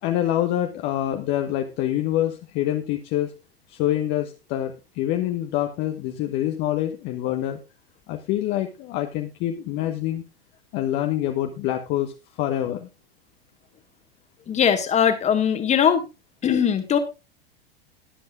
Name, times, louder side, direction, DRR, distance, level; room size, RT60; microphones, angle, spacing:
voice 1, 0.0-3.3 3.7-7.6 8.1-10.2 10.7-12.9, left 12 dB, 35° left, 5 dB, 1.1 m, -26 dB
voice 2, 14.5-16.1 16.4-17.0, left 8 dB, 20° left, 8 dB, 1.7 m, -20 dB
21.5 x 7.7 x 2.4 m, 0.27 s
figure-of-eight pair, 90°, 30 cm